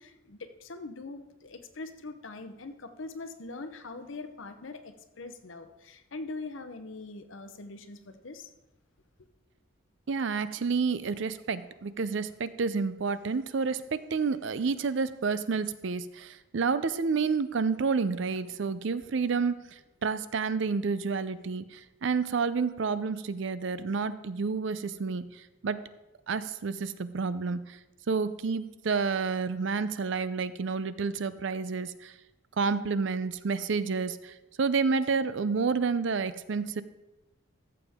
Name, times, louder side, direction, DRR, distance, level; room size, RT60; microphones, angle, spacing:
voice 1, 0.0-8.5, left 3 dB, 70° left, 8 dB, 0.8 m, -42 dB
voice 2, 10.1-25.2 25.6-25.8 26.3-27.8 28.1-32.1 32.6-36.8, right 5 dB, 65° right, 14 dB, 0.5 m, -29 dB
14.0 x 7.0 x 3.6 m, 0.99 s
head